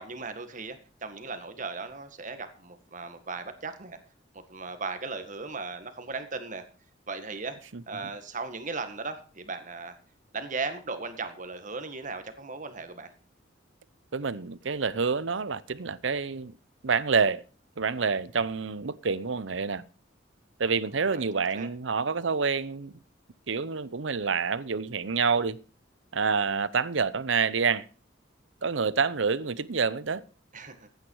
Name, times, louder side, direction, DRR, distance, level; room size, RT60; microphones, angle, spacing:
voice 1, 0.0-4.0 4.5-6.6 7.1-7.6 7.9-10.0 10.3-13.1 21.0-21.2 21.5-21.7 30.5-30.9, right 4 dB, 45° right, 1.8 m, -37 dB
voice 2, 14.1-16.5 16.8-17.4 17.8-19.8 20.6-22.9 23.5-25.6 26.1-27.9 28.6-30.2, right 5 dB, 80° right, 0.8 m, -27 dB
15.0 x 9.5 x 4.8 m
head